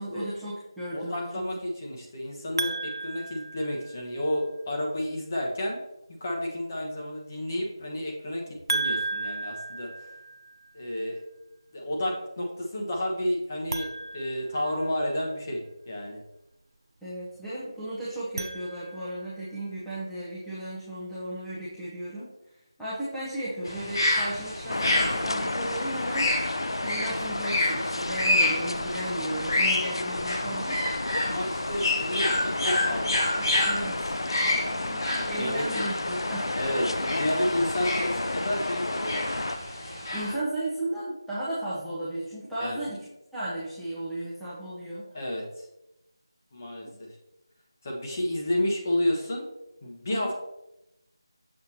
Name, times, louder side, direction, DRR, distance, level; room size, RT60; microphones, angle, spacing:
voice 1, 0.0-1.5 17.0-26.3 26.8-30.8 33.4-34.2 34.8-36.6 40.1-43.0 43.3-45.1 46.8-46.9 50.1-50.3, right 1 dB, ahead, -13 dB, 0.8 m, -35 dB
voice 2, 0.9-5.8 6.2-8.4 8.7-10.1 10.7-11.2 11.7-13.9 14.1-16.2 31.2-33.3 34.5-34.9 35.3-35.8 36.6-39.3 42.6-42.8 45.1-45.5 46.5-47.1 47.8-49.4 49.8-50.3, left 1 dB, 35° left, -1 dB, 1.2 m, -31 dB
sound 1, 2.6-4.3 8.7-10.7 13.6-15.2 18.1-19.3, right 3 dB, 65° right, 0.4 m, -34 dB
sound 2, 23.7-40.3, left 1 dB, 55° left, 1.2 m, -29 dB
sound 3, 24.7-39.6, left 2 dB, 80° left, 0.5 m, -32 dB
6.6 x 5.6 x 2.9 m, 0.89 s
figure-of-eight pair, 170°, 3 cm